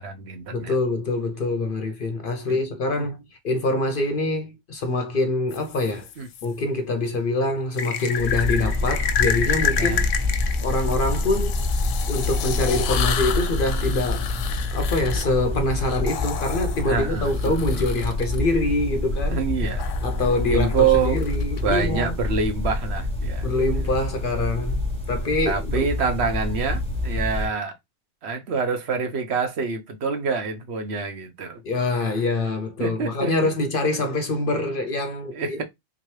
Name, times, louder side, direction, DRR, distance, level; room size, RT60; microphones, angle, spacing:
voice 1, 0.0-0.7 2.5-2.6 3.0-3.1 6.2-6.3 9.7-10.0 16.9-17.5 19.3-19.9 20.5-21.2 21.6-23.5 25.5-27.7 28.2-31.6 32.8-33.5 35.3-35.6, right 5 dB, 65° right, 1.0 m, -26 dB
voice 2, 0.5-6.1 6.4-10.1 10.6-11.6 12.1-14.3 14.7-19.4 20.0-22.1 23.4-25.9 31.6-35.6, left 2 dB, 55° left, 0.7 m, -25 dB
sound 1, 5.5-6.5 7.8-18.4 19.8-21.6, left 8 dB, 90° left, 1.0 m, -30 dB
sound 2, 8.2-27.5, left 2 dB, 5° left, 1.0 m, -27 dB
3.8 x 2.9 x 3.1 m
omnidirectional pair, 1.3 m